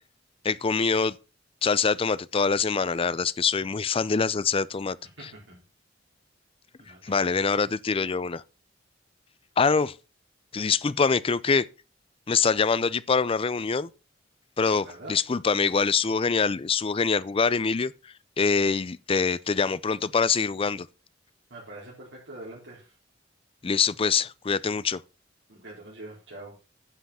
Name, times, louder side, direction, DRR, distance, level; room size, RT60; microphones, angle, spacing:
voice 1, 0.4-1.2 1.6-5.0 7.0-8.4 9.6-9.9 10.5-11.7 12.3-13.9 14.6-17.9 18.4-20.9 23.6-25.0, left 5 dB, 30° left, 0.5 m, -24 dB
voice 2, 5.2-5.6 6.8-7.7 14.7-15.1 21.5-23.0 25.5-26.5, right 2 dB, 85° right, 4.0 m, -44 dB
10.0 x 5.9 x 5.5 m
head